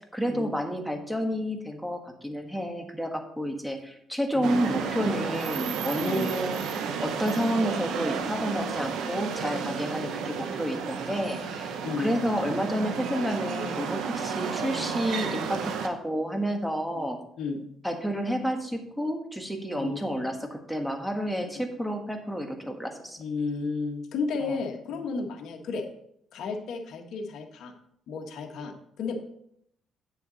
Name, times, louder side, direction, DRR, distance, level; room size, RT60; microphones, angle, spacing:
voice 1, 0.0-6.6 7.0-17.2 17.8-23.2 24.4-24.6, equal, ahead, 3 dB, 1.5 m, -30 dB
sound 1, 4.4-15.9, right 6 dB, 85° right, 0.9 m, -32 dB
voice 2, 11.8-12.1 16.9-17.0 17.4-17.6 19.8-20.0 21.5-21.6 23.2-25.8 26.3-27.7 28.1-29.1, left 4 dB, 75° left, 3 dB, 1.4 m, -33 dB
9.3 x 6.9 x 4.1 m, 0.70 s
cardioid pair, 90°, 0 cm